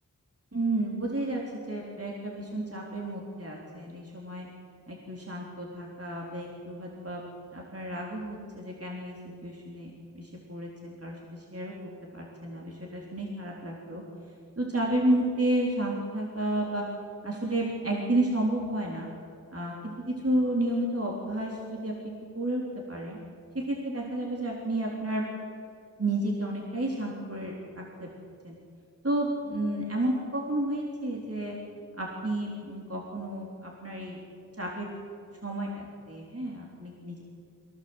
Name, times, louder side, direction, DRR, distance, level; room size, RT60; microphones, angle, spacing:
voice 1, 0.5-1.4 1.7-4.5 4.9-7.2 7.5-9.2 9.4-11.7 12.1-14.0 14.6-16.8 17.2-19.1 19.5-21.9 22.4-22.6 22.9-23.2 23.5-25.2 26.0-28.1 28.4-28.6 29.0-31.6 32.0-34.2 34.6-34.9 35.4-37.2, right 1 dB, 40° right, -2 dB, 3.7 m, -31 dB
24.0 x 17.0 x 8.1 m, 2.5 s
wide cardioid pair, 50°, 35 cm